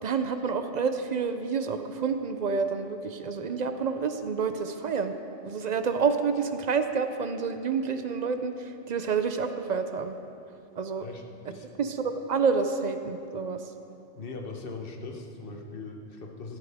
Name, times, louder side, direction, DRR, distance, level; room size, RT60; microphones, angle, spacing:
voice 1, 0.0-5.1 5.4-10.2 10.8-11.1 11.8-13.6, right 5 dB, 55° right, 8 dB, 0.4 m, -28 dB
voice 2, 11.0-11.7 14.2-16.6, left 3 dB, 50° left, 2 dB, 1.2 m, -40 dB
12.5 x 12.5 x 3.5 m, 2.7 s
omnidirectional pair, 1.2 m